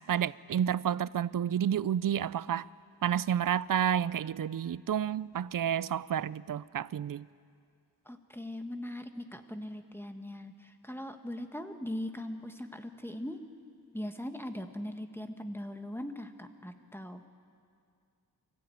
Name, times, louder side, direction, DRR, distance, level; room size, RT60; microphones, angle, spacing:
voice 1, 0.1-2.7 3.0-7.2, right 9 dB, 60° right, 0.5 m, -30 dB
voice 2, 8.0-13.4 13.9-17.3, left 1 dB, 5° left, 1.5 m, -40 dB
24.0 x 15.5 x 9.2 m
wide cardioid pair, 75°, 39 cm